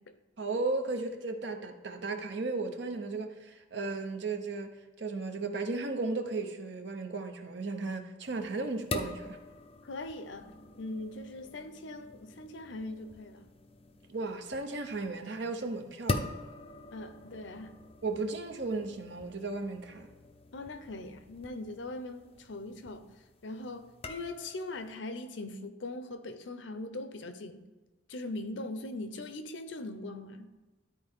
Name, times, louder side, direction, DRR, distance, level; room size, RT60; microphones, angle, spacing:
voice 1, 0.4-9.4 14.1-16.3 18.0-20.1, right 3 dB, 60° right, 0.8 m, -35 dB
sound 1, 8.2-25.0, left 2 dB, 30° left, 0.5 m, -43 dB
voice 2, 9.8-10.5 10.8-13.5 16.9-17.7 20.5-23.1 23.4-27.6 28.1-30.5, left 2 dB, 70° left, 0.7 m, -41 dB
12.5 x 4.4 x 3.6 m
head